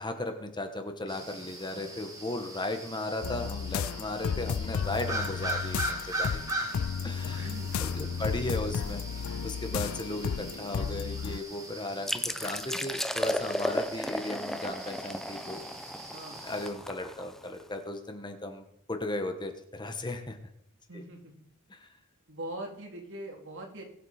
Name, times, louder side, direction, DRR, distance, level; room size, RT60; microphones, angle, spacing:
voice 1, 0.0-6.4 7.0-7.5 7.8-9.0 9.4-15.6 16.4-20.4 20.9-21.0 21.7-21.9, left 2 dB, 20° left, 6 dB, 1.2 m, -36 dB
sound 1, 1.1-16.7, right 1 dB, 15° right, 2.2 m, -40 dB
sound 2, 3.2-11.4, left 7 dB, 70° left, 0.4 m, -33 dB
voice 2, 7.4-8.4 16.1-16.4 20.9-21.5 22.3-23.8, right 1 dB, 60° right, 1 dB, 3.0 m, -42 dB
sound 3, 12.1-17.6, equal, ahead, 0.6 m, -34 dB
21.0 x 8.1 x 4.3 m, 0.76 s
head